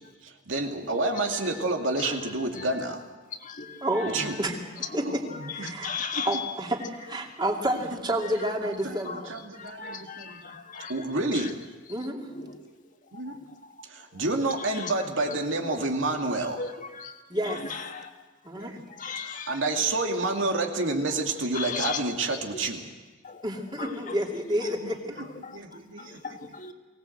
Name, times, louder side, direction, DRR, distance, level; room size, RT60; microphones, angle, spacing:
voice 1, 0.2-3.0 4.1-4.3 5.0-5.8 6.2-6.3 8.6-9.0 9.3-10.4 10.9-11.6 13.1-13.4 13.9-16.6 18.5-18.8 19.2-22.9 24.8-24.9 25.2-26.2, right 2 dB, 90° right, 3 dB, 2.5 m, -29 dB
voice 2, 1.1-1.5 2.0-2.2 2.5-3.0 3.4-4.3 4.8-5.0 5.3-6.5 8.4-8.5 9.0-9.2 9.5-11.0 11.3-11.5 12.2-12.6 13.2-13.8 14.1-14.2 14.6-15.3 15.6-15.7 16.6-17.2 17.4-18.1 18.9-19.6 21.1-21.2 21.5-22.0 22.3-22.6 23.2-23.4 23.8-24.2 24.6-24.7 25.2-26.7, left 5 dB, 40° left, 5 dB, 1.6 m, -38 dB
voice 3, 3.8-4.5 4.9-5.2 5.5-5.9 6.3-6.8 7.1-9.4 11.9-12.3 17.3-17.6 18.4-18.7 23.4-25.1, right 1 dB, 25° right, 1 dB, 2.6 m, -29 dB
24.0 x 18.0 x 7.9 m, 1.3 s
head